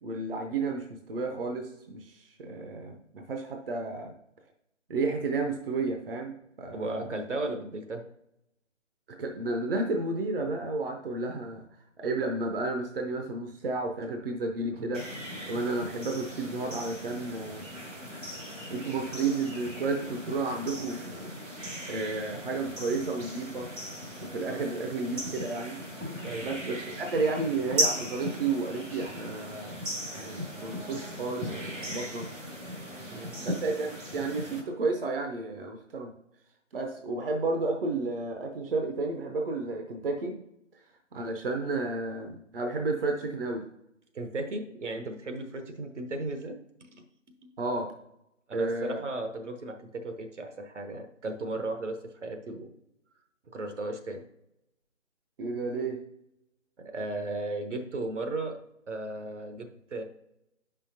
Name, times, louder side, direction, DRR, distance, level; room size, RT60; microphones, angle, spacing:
voice 1, 0.0-4.1 4.9-7.1 9.2-11.6 12.0-15.1 15.5-17.7 18.7-21.3 21.9-23.7 24.2-25.8 26.4-29.8 30.1-32.3 33.4-36.1 36.7-40.4 41.1-43.7 47.6-47.9 48.5-49.0 55.4-56.0, right 3 dB, 50° right, 3 dB, 0.7 m, -32 dB
voice 2, 6.7-8.0 14.7-14.9 24.5-24.6 26.2-26.4 33.1-33.3 44.1-47.0 48.5-52.7 53.5-54.2 56.8-58.6 58.9-60.0, right 2 dB, 70° right, 6 dB, 1.0 m, -35 dB
sound 1, 14.9-34.6, equal, 90° right, 2.3 m, -37 dB
8.2 x 5.6 x 2.7 m, 0.82 s
figure-of-eight pair, 150°, 37 cm